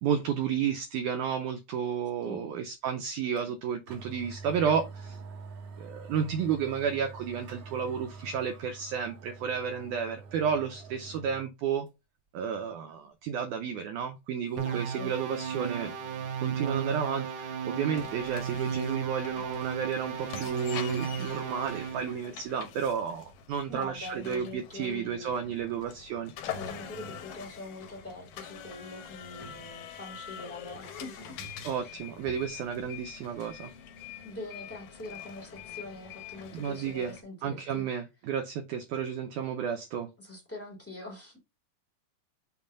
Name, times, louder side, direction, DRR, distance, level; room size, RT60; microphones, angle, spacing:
voice 1, 0.0-5.2 5.8-11.9 12.3-15.9 16.4-26.3 31.6-33.7 36.5-37.1 37.4-40.1, right 7 dB, 85° right, 1.7 m, -32 dB
voice 2, 2.2-2.5 14.6-15.1 23.7-25.7 26.4-31.3 31.8-32.0 34.2-37.9 40.2-41.4, left 2 dB, 20° left, 0.4 m, -43 dB
sound 1, 3.4-3.5 3.9-11.5 11.9-12.0 14.5-17.1, right 4 dB, 50° right, 1.8 m, -47 dB
sound 2, 14.6-22.1, right 7 dB, 70° right, 1.9 m, -34 dB
sound 3, 18.0-37.2, left 8 dB, 70° left, 2.0 m, -45 dB
7.1 x 2.5 x 5.3 m
omnidirectional pair, 4.2 m